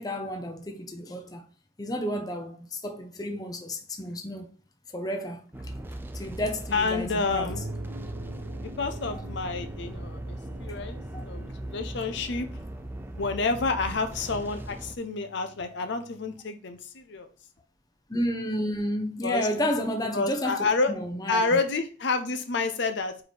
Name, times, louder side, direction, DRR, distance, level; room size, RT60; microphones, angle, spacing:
voice 1, 0.0-1.4 1.8-4.5 4.9-5.4 6.1-7.5 11.1-11.2 18.1-21.6, equal, 20° left, 0.7 m, -31 dB
sound 1, 5.5-15.0, right 1 dB, 10° right, 0.4 m, -39 dB
sound 2, 5.5-16.4, right 2 dB, 75° right, 0.8 m, -45 dB
voice 2, 6.7-7.6 8.6-12.5 13.2-17.3 19.2-19.5 20.1-21.0 21.3-23.2, left 3 dB, 55° left, 0.6 m, -29 dB
4.8 x 4.7 x 4.2 m
head